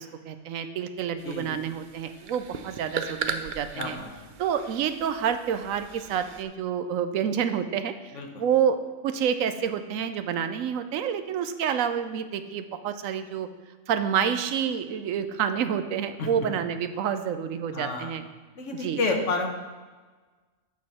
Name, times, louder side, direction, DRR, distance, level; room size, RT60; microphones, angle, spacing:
voice 1, 0.0-4.0 4.4-7.9 8.4-8.8 9.0-13.5 13.9-18.2 18.8-19.0, right 8 dB, 80° right, 9 dB, 1.0 m, -28 dB
voice 2, 1.2-1.6 3.7-4.3 8.1-8.4 16.2-16.5 17.7-18.1 18.6-19.5, left 3 dB, 65° left, 3 dB, 1.3 m, -30 dB
sound 1, 1.2-6.4, right 6 dB, 60° right, 0.5 m, -38 dB
8.2 x 6.4 x 4.2 m, 1.4 s
omnidirectional pair, 1.4 m